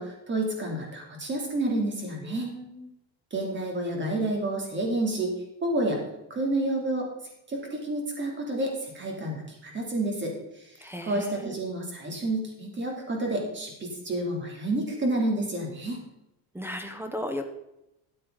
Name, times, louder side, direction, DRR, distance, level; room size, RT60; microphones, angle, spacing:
voice 1, 0.0-2.5 3.3-5.3 5.6-6.0 6.3-7.1 7.5-16.0, right 1 dB, 25° right, 1 dB, 3.0 m, -29 dB
voice 2, 2.3-2.9 10.8-11.6 16.5-17.5, equal, 5° right, 7 dB, 0.9 m, -36 dB
13.0 x 8.5 x 3.9 m, 0.87 s
cardioid pair, 140°, 43 cm